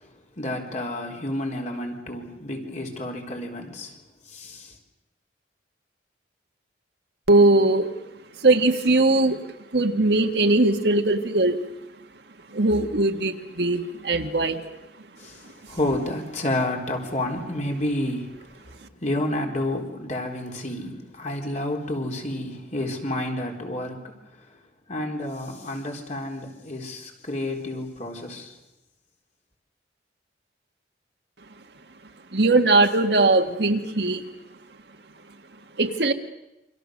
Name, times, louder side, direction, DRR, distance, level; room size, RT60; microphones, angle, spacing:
voice 1, 0.4-4.0 4.3-4.7 15.2-18.3 19.0-24.1 24.9-28.5, left 1 dB, 40° left, 1 dB, 4.1 m, -30 dB
voice 2, 7.3-7.9 8.4-9.4 9.7-11.6 12.5-14.6 32.3-34.2 35.8-36.1, right 2 dB, 65° right, 5 dB, 1.8 m, -20 dB
28.5 x 25.0 x 6.5 m, 0.94 s
head